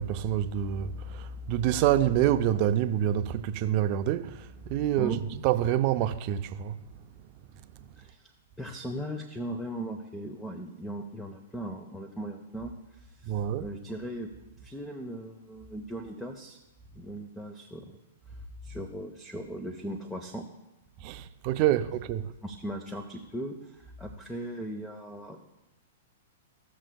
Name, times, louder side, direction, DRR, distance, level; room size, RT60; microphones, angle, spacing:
voice 1, 0.0-6.8 13.2-13.7 21.0-22.3, right 11 dB, 45° right, 0.5 m, -27 dB
voice 2, 8.0-8.3 8.6-14.3 14.6-16.6 16.9-18.0 18.3-20.5 22.4-25.4, right 1 dB, 5° left, 0.7 m, -38 dB
15.0 x 6.3 x 2.3 m
hypercardioid pair, 125°, 0 cm